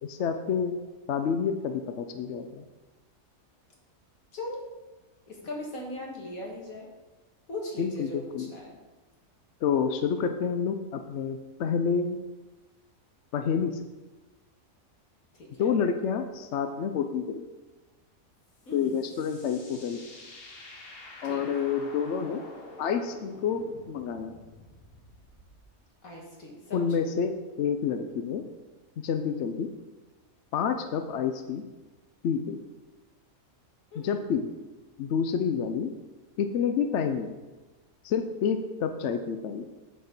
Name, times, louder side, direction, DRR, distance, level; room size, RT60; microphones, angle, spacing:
voice 1, 0.1-0.8 1.1-2.6 7.8-8.5 9.6-12.2 13.3-13.8 15.6-17.5 18.7-20.0 21.2-22.4 22.8-24.3 26.7-27.3 27.6-28.4 29.0-29.7 30.5-31.6 32.2-32.6 34.0-34.5 35.0-35.9 36.4-37.3 38.0-39.7, left 6 dB, 65° left, 7 dB, 0.8 m, -28 dB
voice 2, 4.3-4.7 5.3-6.9 7.5-8.8 15.3-15.7 18.7-19.0 21.2-21.4 26.0-27.2 33.9-34.2, left 1 dB, 80° left, -1 dB, 2.2 m, -39 dB
sound 1, 18.5-25.7, left 2 dB, 45° left, 1.3 m, -48 dB
8.3 x 4.4 x 5.9 m, 1.2 s
omnidirectional pair, 1.5 m